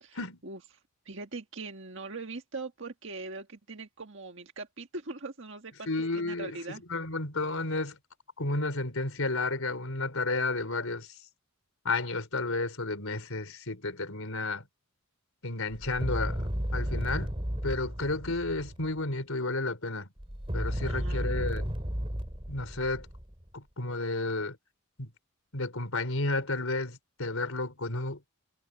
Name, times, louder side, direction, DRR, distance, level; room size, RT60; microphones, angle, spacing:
voice 1, 1.1-6.8 20.9-21.4, right 3 dB, 60° right, 1.7 m, -41 dB
voice 2, 5.9-8.0 8.4-11.2 11.8-14.6 15.4-16.4 16.7-17.3 17.6-20.1 20.5-21.7 22.5-23.1 23.5-24.6 25.0-25.1 25.5-28.2, left 2 dB, 75° left, 4.1 m, -32 dB
sound 1, 15.7-19.0 20.2-23.5, equal, 25° right, 2.8 m, -33 dB
head